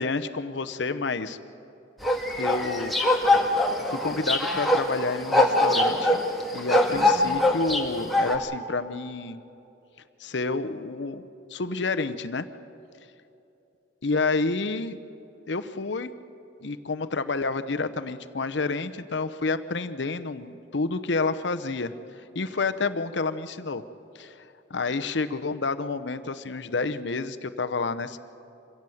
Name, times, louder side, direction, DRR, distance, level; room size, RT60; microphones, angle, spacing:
voice 1, 0.0-1.4 2.4-2.9 3.9-6.2 6.5-9.4 10.2-11.2 11.5-12.5 14.0-15.0 15.5-16.1 16.6-21.9 22.3-23.8 24.1-28.2, left 3 dB, 70° left, 11 dB, 0.8 m, -29 dB
sound 1, 2.0-8.4, left 1 dB, ahead, 1.8 m, -23 dB
25.5 x 16.5 x 7.8 m, 2.9 s
head